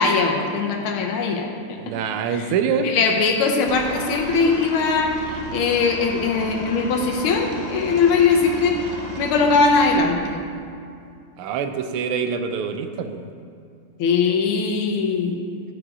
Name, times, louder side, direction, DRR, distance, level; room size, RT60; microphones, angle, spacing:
voice 1, 0.0-1.9 2.3-2.5 2.8-8.8 9.2-10.4 14.0-15.4, left 4 dB, 80° left, 3 dB, 1.7 m, -20 dB
voice 2, 1.8-2.9 11.4-13.2, right 6 dB, 85° right, 8 dB, 1.5 m, -25 dB
Aircraft, 3.7-10.0, right 1 dB, 50° right, 0.4 m, -34 dB
11.5 x 5.1 x 4.8 m, 2.4 s
omnidirectional pair, 2.3 m